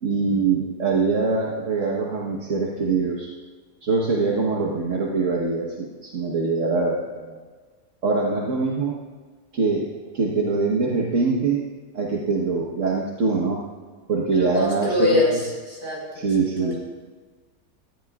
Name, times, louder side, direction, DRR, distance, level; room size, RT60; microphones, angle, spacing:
voice 1, 0.0-3.3 3.8-7.4 8.0-8.9 9.5-9.9 10.1-11.6 11.9-13.6 14.1-15.4 16.1-16.8, right 4 dB, 60° right, -2 dB, 1.6 m, -23 dB
voice 2, 14.3-15.3 15.7-16.3 16.6-16.8, left 2 dB, 25° right, -4 dB, 4.9 m, -23 dB
18.5 x 14.0 x 2.4 m, 1.4 s
omnidirectional pair, 1.5 m